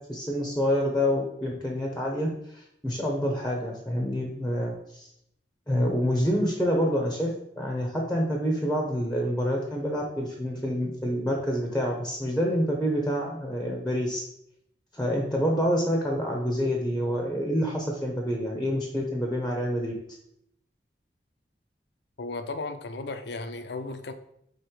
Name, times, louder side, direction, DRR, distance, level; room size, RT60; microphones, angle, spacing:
voice 1, 0.1-2.3 2.5-5.1 5.7-14.2 14.9-19.9, equal, 5° left, 0 dB, 0.8 m, -27 dB
voice 2, 22.2-24.1, left 3 dB, 65° left, 10 dB, 0.5 m, -35 dB
5.1 x 4.1 x 4.6 m, 0.75 s
head